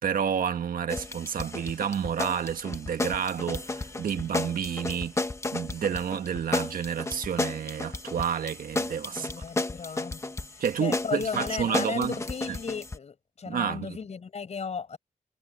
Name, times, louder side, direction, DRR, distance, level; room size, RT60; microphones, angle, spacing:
voice 1, 0.0-5.2 5.5-9.3 10.6-12.1 13.4-14.0, right 8 dB, 90° right, 1.5 m, -30 dB
sound 1, 0.9-13.0, left 2 dB, 20° left, 1.1 m, -33 dB
voice 2, 9.1-10.2 10.5-15.0, left 6 dB, 50° left, 5.0 m, -35 dB
wide cardioid pair, 150°, 14 cm